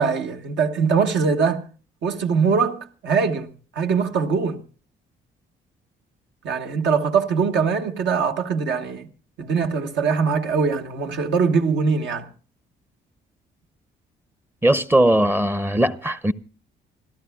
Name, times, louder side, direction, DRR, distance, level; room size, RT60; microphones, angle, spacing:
voice 1, 0.0-1.6 2.0-3.5 3.7-4.6 6.4-9.1 9.4-12.3, right 5 dB, 75° right, 1.3 m, -22 dB
voice 2, 14.6-16.3, right 1 dB, 10° right, 0.6 m, -19 dB
27.5 x 13.0 x 2.3 m
cardioid pair, 90°, 19 cm